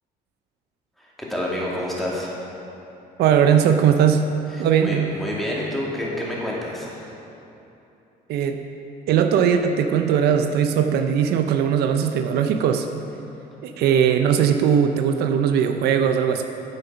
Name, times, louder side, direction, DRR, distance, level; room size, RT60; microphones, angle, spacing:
voice 1, 1.0-2.3 4.5-7.1, left 1 dB, ahead, -6 dB, 2.4 m, -29 dB
voice 2, 3.2-4.2 4.6-5.1 8.3-8.6 9.1-12.9 13.6-16.4, right 8 dB, 75° right, 6 dB, 0.6 m, -19 dB
8.9 x 7.7 x 5.7 m, 2.9 s
cardioid pair, 110°, 17 cm